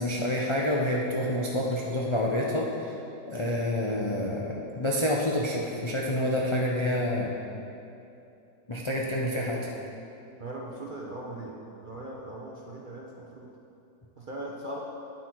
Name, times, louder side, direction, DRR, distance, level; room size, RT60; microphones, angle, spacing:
voice 1, 0.0-2.9 3.3-7.4 8.7-9.6, left 1 dB, 50° left, -3 dB, 0.3 m, -28 dB
voice 2, 10.4-13.5 14.2-14.8, right 1 dB, 45° right, -3 dB, 0.7 m, -39 dB
9.1 x 7.7 x 4.6 m, 2.7 s
omnidirectional pair, 1.9 m